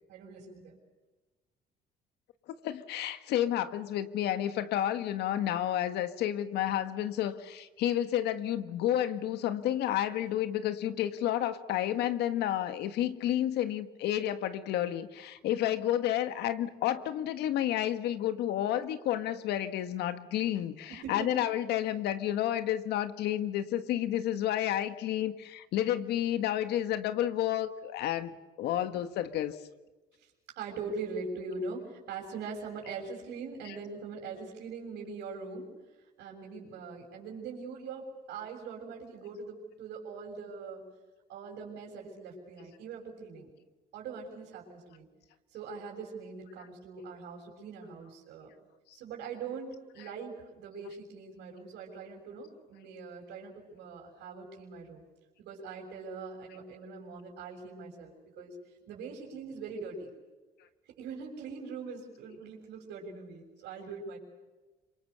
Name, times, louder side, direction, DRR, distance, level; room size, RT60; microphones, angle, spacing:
voice 1, 0.1-0.8 20.9-21.3 30.2-30.3 30.5-35.7 36.2-40.8 41.3-43.5 43.9-45.1 45.5-48.5 48.9-55.0 55.4-58.5 58.9-60.1 60.8-64.2, right 4 dB, 85° right, -1 dB, 6.6 m, -42 dB
voice 2, 2.6-28.3 28.6-29.6, left 12 dB, 80° left, 10 dB, 1.7 m, -30 dB
27.0 x 24.5 x 6.8 m, 1.2 s
cardioid pair, 110°, 17 cm